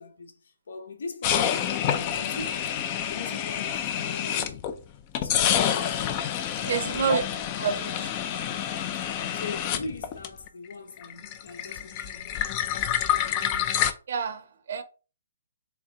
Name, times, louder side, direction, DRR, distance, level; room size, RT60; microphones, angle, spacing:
voice 1, 0.0-2.8 3.1-4.7 5.2-6.0 6.5-7.3 8.9-12.5, left 4 dB, 70° left, 0.9 m, -41 dB
sound 1, 1.2-4.8 5.2-10.7 11.0-13.9, left 9 dB, 25° left, 0.3 m, -28 dB
voice 2, 6.6-7.2 7.6-8.1 14.1-14.8, right 6 dB, 55° right, 0.6 m, -28 dB
3.7 x 3.1 x 2.7 m
hypercardioid pair, 165°, 0 cm